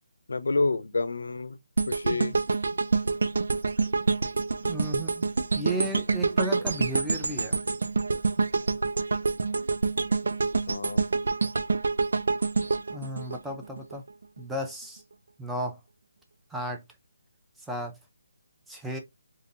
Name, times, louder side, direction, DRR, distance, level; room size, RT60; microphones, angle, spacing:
voice 1, 0.3-1.6 1.9-2.4 10.7-11.1, left 3 dB, 80° left, 0.5 m, -29 dB
sound 1, 1.8-13.9 14.4-14.5, right 4 dB, 75° right, 0.3 m, -27 dB
voice 2, 4.6-7.6 12.9-14.0 14.4-15.0 15.4-15.8 16.5-16.8 17.7-18.0 18.7-19.0, right 1 dB, 5° right, 0.5 m, -34 dB
3.7 x 2.7 x 2.6 m
hypercardioid pair, 165°, 0 cm